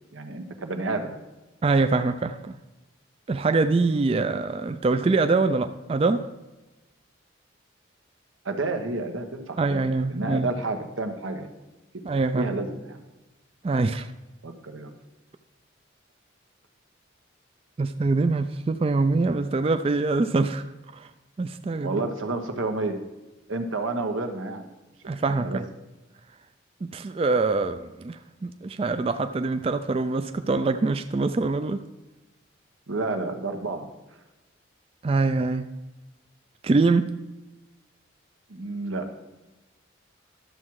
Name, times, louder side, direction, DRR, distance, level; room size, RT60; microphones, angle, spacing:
voice 1, 0.1-1.1 8.4-9.8 10.1-11.5 12.3-13.0 14.4-14.9 21.8-23.0 23.5-24.7 25.0-25.6 32.9-33.9 38.5-39.1, right 2 dB, 90° right, 6 dB, 1.2 m, -30 dB
voice 2, 1.6-2.6 3.3-6.3 9.6-10.5 12.0-12.5 13.6-14.1 17.8-20.7 20.9-21.1 21.4-22.0 25.0-25.7 26.8-31.8 35.0-35.7 36.6-37.1, right 3 dB, 30° right, 8 dB, 0.3 m, -24 dB
12.0 x 7.3 x 4.7 m, 1.1 s
head